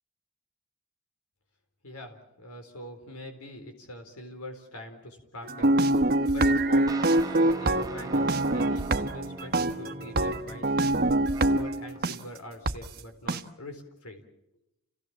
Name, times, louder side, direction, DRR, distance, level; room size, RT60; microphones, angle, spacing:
voice 1, 1.8-5.7 6.3-10.9 11.4-14.2, left 1 dB, 85° left, 5 dB, 4.1 m, -43 dB
sound 1, 5.4-12.2 12.7-12.8 13.3-13.4, right 1 dB, 45° right, 1.1 m, -25 dB
sound 2, 6.9-12.0, right 2 dB, 15° right, 1.1 m, -42 dB
30.0 x 17.5 x 7.4 m, 0.90 s
head